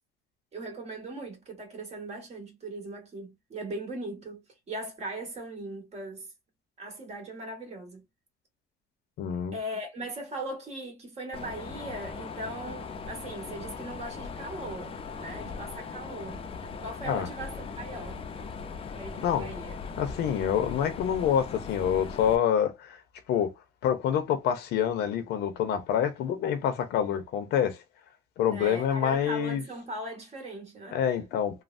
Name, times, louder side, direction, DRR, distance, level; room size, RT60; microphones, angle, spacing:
voice 1, 0.5-6.3 6.8-8.0 9.5-16.4 16.8-18.5 18.9-19.8 28.5-31.2, right 1 dB, 40° right, 1.7 m, -39 dB
voice 2, 9.2-9.6 17.1-17.3 19.2-19.5 20.0-23.0 23.3-23.5 23.8-27.8 28.4-29.6 30.9-31.6, left 9 dB, 80° left, 0.8 m, -27 dB
Mechanisms, 11.3-22.4, left 5 dB, 35° left, 0.6 m, -39 dB
3.2 x 2.2 x 2.6 m
cardioid pair, 110°, 17 cm